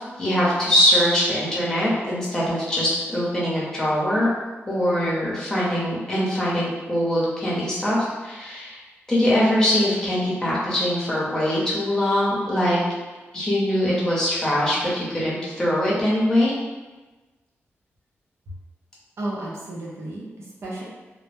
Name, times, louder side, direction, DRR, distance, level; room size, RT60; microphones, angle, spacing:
voice 1, 0.2-4.3 4.7-8.8 9.1-12.8 13.3-16.5, left 1 dB, 15° left, -7 dB, 0.7 m, -22 dB
voice 2, 19.2-20.8, right 1 dB, 70° right, -5 dB, 0.6 m, -33 dB
2.1 x 2.0 x 3.1 m, 1.2 s
wide cardioid pair, 125°, 5 cm